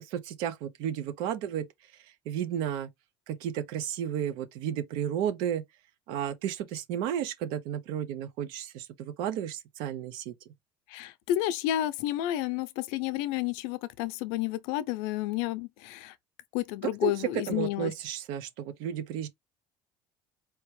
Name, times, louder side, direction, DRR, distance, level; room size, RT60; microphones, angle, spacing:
voice 1, 0.0-1.6 2.0-2.9 3.3-5.6 6.1-10.3 17.0-19.3, right 10 dB, 70° right, 0.6 m, -33 dB
voice 2, 10.9-16.1 16.5-17.9, left 13 dB, 90° left, 0.6 m, -31 dB
4.5 x 2.9 x 3.2 m
cardioid pair, 165°, 8 cm